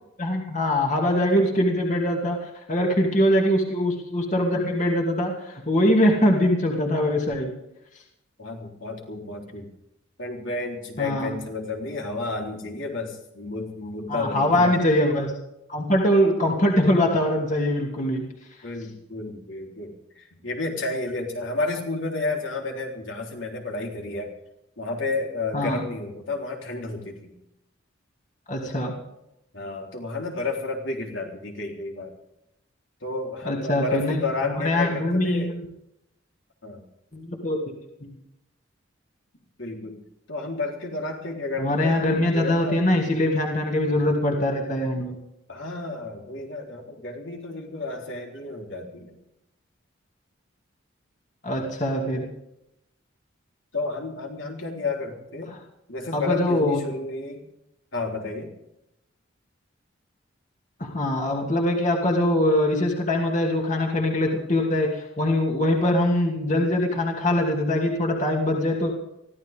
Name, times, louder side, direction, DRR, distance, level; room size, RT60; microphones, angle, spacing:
voice 1, 0.2-7.5 11.0-11.3 14.1-15.3 15.7-18.2 25.5-25.8 28.5-28.9 33.4-35.7 37.1-37.6 38.0-38.2 41.6-45.1 51.4-52.3 55.5-55.6 56.1-56.8 60.8-68.9, left 1 dB, 40° left, 0 dB, 2.5 m, -23 dB
voice 2, 8.4-9.7 10.2-14.9 18.6-24.3 24.8-27.3 29.5-32.1 33.0-35.5 36.6-36.8 39.6-40.0 40.3-42.8 45.5-49.1 53.7-55.5 55.9-57.4 57.9-58.5, left 3 dB, 70° left, 0 dB, 3.8 m, -31 dB
23.0 x 15.5 x 3.7 m, 0.85 s
head